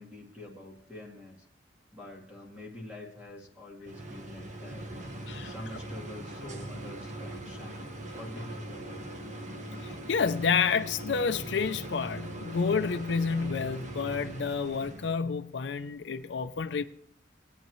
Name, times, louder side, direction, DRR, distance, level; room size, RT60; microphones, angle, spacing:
voice 1, 0.0-1.4 1.9-4.9 5.4-7.8 8.1-9.2, left 1 dB, 10° right, 2.2 m, -46 dB
sound 1, 3.9-15.2, right 1 dB, 45° right, 1.2 m, -41 dB
voice 2, 9.8-16.8, left 5 dB, 85° left, 0.5 m, -29 dB
19.5 x 9.1 x 3.1 m
head